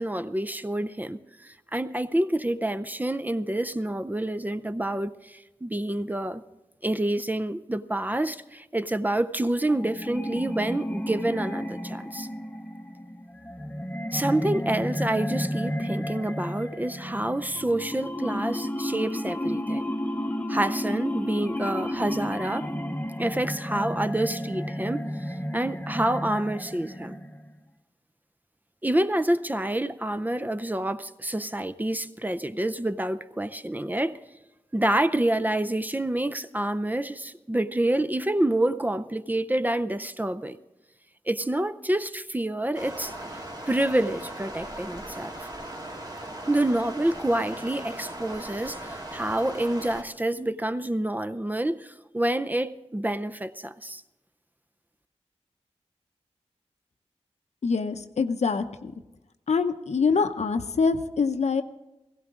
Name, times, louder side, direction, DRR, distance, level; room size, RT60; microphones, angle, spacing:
voice 1, 0.0-6.4 6.8-12.3 14.1-19.9 20.5-22.7 23.2-25.1 25.5-27.2 28.8-34.2 34.7-40.6 41.3-43.1 43.7-45.4 46.5-54.0, right 1 dB, 15° right, 0.5 m, -28 dB
sound 1, 9.6-27.6, equal, 15° left, 0.8 m, -32 dB
Stream, 42.7-50.0, right 1 dB, 40° right, 1.8 m, -38 dB
voice 2, 57.6-58.9 59.5-61.6, left 5 dB, 80° left, 0.7 m, -25 dB
16.5 x 16.0 x 3.7 m
wide cardioid pair, 65°, 11 cm